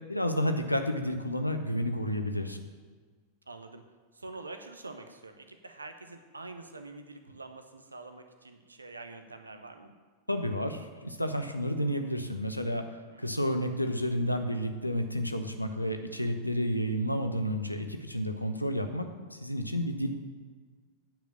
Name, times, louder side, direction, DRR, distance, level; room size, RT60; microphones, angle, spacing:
voice 1, 0.0-2.6 10.3-12.9 13.2-20.1, equal, 90° left, 6 dB, 0.8 m, -31 dB
voice 2, 3.5-3.8 4.1-9.9 13.1-13.6, right 3 dB, 80° right, 7 dB, 0.9 m, -46 dB
9.1 x 5.0 x 7.4 m, 1.5 s
figure-of-eight pair, 90°, 0 cm